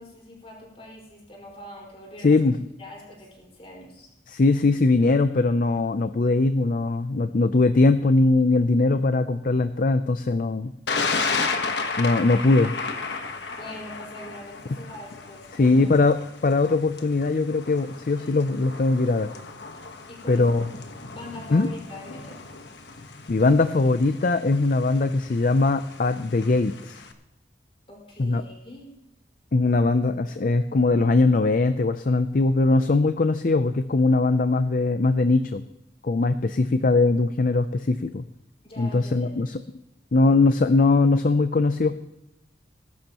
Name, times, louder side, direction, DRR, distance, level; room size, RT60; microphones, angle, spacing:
voice 1, 0.0-2.4 2.8-4.1 13.5-15.9 20.1-20.5 21.1-22.4 27.9-28.8 38.6-39.4, left 1 dB, 30° left, -2 dB, 5.0 m, -43 dB
voice 2, 2.2-2.6 4.3-10.7 12.0-12.8 15.6-16.2 16.4-19.3 20.3-20.7 21.5-21.7 23.3-27.0 28.2-28.4 29.5-35.6 36.0-38.2 38.8-39.6 40.1-41.9, left 3 dB, 45° left, 10 dB, 0.5 m, -21 dB
Thunder, 10.9-27.1, left 4 dB, 65° left, 1.3 m, -34 dB
20.0 x 11.5 x 3.0 m, 0.90 s
head